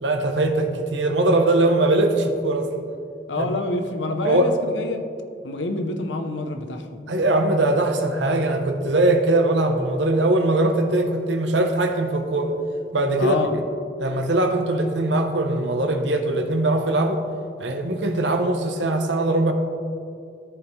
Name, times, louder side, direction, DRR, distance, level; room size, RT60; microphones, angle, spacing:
voice 1, 0.0-2.7 3.4-3.5 4.2-4.5 7.1-12.5 12.9-13.4 14.0-17.2 17.6-19.5, right 2 dB, 80° right, 5 dB, 0.8 m, -21 dB
voice 2, 3.3-5.1 5.4-7.0 13.2-13.6, left 2 dB, 90° left, 7 dB, 0.7 m, -27 dB
14.0 x 5.0 x 3.2 m, 2.4 s
head